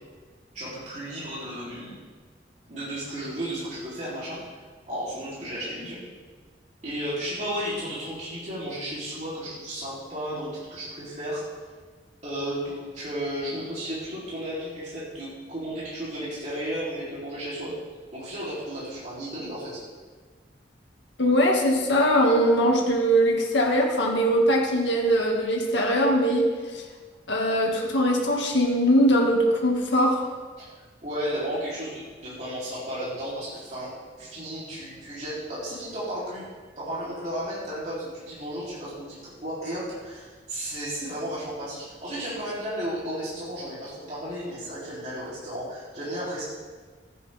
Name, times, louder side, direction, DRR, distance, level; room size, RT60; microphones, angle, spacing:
voice 1, 0.5-1.9 2.7-4.6 4.9-6.0 6.8-11.4 12.2-17.7 18.1-19.8 30.6-30.7 31.0-36.4 36.8-46.4, equal, 40° right, -8 dB, 3.3 m, -33 dB
voice 2, 21.2-26.4 26.7-26.8 27.3-30.2, equal, 85° left, 0 dB, 2.0 m, -21 dB
15.0 x 8.4 x 3.5 m, 1.5 s
head